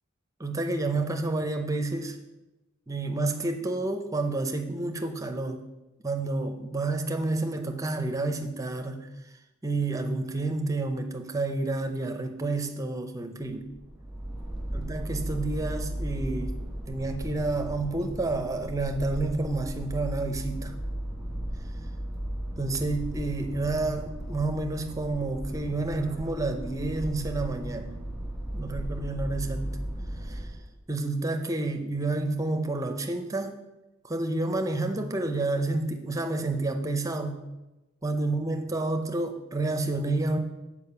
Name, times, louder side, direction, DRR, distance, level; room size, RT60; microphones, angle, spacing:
voice 1, 0.4-2.2 2.9-5.6 6.0-9.1 9.6-13.7 14.7-16.6 16.9-20.7 22.6-28.0 28.5-29.7 30.2-30.5 30.9-33.6 34.0-37.4 38.0-40.4, right 2 dB, 15° right, 6 dB, 0.6 m, -29 dB
sound 1, 13.5-30.7, right 1 dB, ahead, 1.4 m, -35 dB
6.9 x 5.0 x 6.7 m, 1.0 s
head